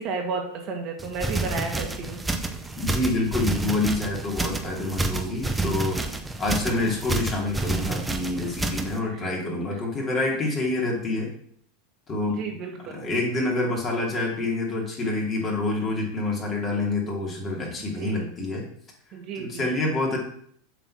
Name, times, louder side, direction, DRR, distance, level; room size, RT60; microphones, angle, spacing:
voice 1, 0.0-2.2 5.4-5.8 8.3-8.4 9.1-9.3 12.3-13.1 18.0-18.3 19.1-19.7, right 4 dB, 45° right, 2 dB, 1.7 m, -33 dB
sound 1, 1.0-9.0, right 2 dB, 10° right, 0.7 m, -29 dB
voice 2, 2.7-11.3 12.1-12.4 12.9-18.6 19.4-20.2, left 2 dB, 25° left, -1 dB, 2.6 m, -27 dB
7.3 x 4.0 x 6.0 m, 0.64 s
supercardioid pair, 125°, 0 cm